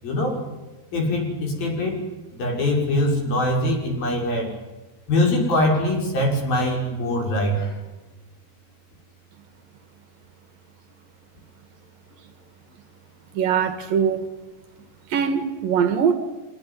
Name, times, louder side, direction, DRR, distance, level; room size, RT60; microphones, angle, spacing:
voice 1, 0.0-0.4 0.9-2.0 2.3-4.5 5.1-7.7, left 1 dB, 80° left, 0 dB, 8.0 m, -23 dB
voice 2, 13.3-14.3 15.1-16.1, right 7 dB, 75° right, 9 dB, 3.2 m, -21 dB
25.5 x 21.0 x 9.8 m, 1.1 s
omnidirectional pair, 4.2 m